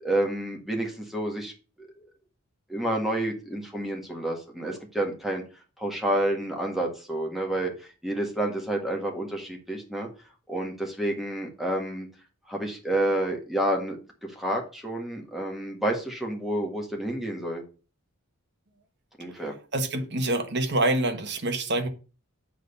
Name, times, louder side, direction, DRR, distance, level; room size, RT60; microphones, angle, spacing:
voice 1, 0.0-1.5 1.8-1.9 2.7-5.4 5.8-10.1 10.5-12.1 12.5-14.0 14.3-17.6 19.2-19.5, right 1 dB, ahead, 1.8 m, -29 dB
voice 2, 19.7-21.9, right 2 dB, 50° right, 1.3 m, -26 dB
7.7 x 4.0 x 6.6 m
head